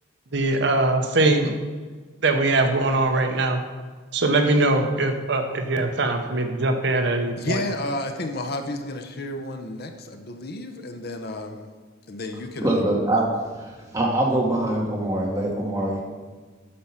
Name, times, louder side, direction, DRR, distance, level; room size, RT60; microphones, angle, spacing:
voice 1, 0.3-1.5 2.2-3.6 4.1-7.6, right 2 dB, 55° right, 6 dB, 0.8 m, -22 dB
voice 2, 7.4-11.7 12.1-12.9, left 1 dB, 50° left, 6 dB, 0.7 m, -31 dB
voice 3, 12.6-13.3 13.6-16.0, right 1 dB, 15° right, -2 dB, 1.6 m, -23 dB
8.6 x 6.0 x 5.6 m, 1.4 s
head